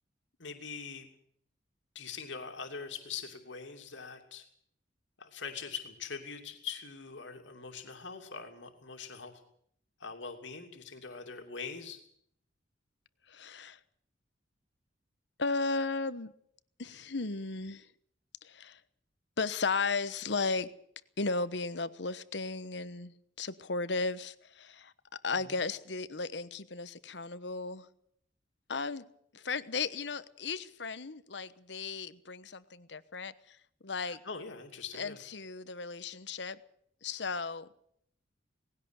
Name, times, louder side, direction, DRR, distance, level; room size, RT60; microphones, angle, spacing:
voice 1, 0.4-1.1 1.9-4.5 5.2-9.4 10.0-12.0 25.4-25.6 34.0-35.2, left 5 dB, 85° left, 2.9 m, -43 dB
voice 2, 13.3-13.8 15.4-16.3 16.8-17.9 18.4-18.8 19.4-20.8 21.2-24.9 25.2-27.9 28.7-29.1 29.3-33.6 33.8-34.2 34.9-36.6 37.0-37.7, left 4 dB, 70° left, 1.1 m, -35 dB
19.0 x 17.0 x 8.2 m
head